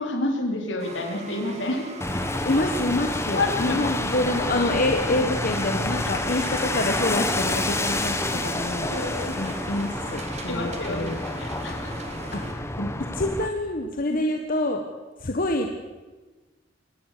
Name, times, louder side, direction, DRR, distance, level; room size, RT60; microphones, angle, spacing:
voice 1, 0.0-1.9 3.3-3.8 8.9-9.4 10.5-11.1 11.4-11.9, left 2 dB, 75° left, 2 dB, 4.1 m, -29 dB
sound 1, 0.8-12.5, right 2 dB, 40° right, 3.0 m, -39 dB
sound 2, 2.0-13.5, left 2 dB, 15° left, 1.6 m, -28 dB
voice 2, 2.4-8.2 8.4-11.2 12.3-14.8 15.2-15.7, left 1 dB, 50° left, 4 dB, 1.5 m, -27 dB
23.0 x 18.5 x 6.8 m, 1.3 s
head